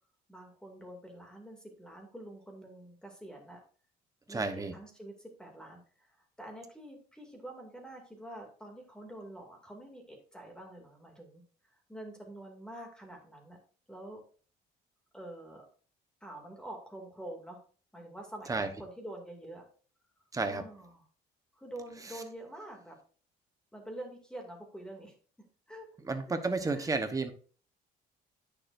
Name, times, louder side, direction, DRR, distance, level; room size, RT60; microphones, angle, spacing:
voice 1, 0.3-3.6 4.3-6.1 6.4-13.6 13.9-14.2 15.1-15.7 16.2-17.6 17.9-19.7 20.4-21.1 21.5-23.0 23.7-25.1 25.7-25.9 26.3-27.0, right 1 dB, 5° left, 2 dB, 2.4 m, -47 dB
voice 2, 4.3-4.7 18.5-18.7 20.3-20.6 26.1-27.3, right 3 dB, 20° right, 7 dB, 1.0 m, -31 dB
9.5 x 6.8 x 2.6 m, 0.41 s
cardioid pair, 110°, 17 cm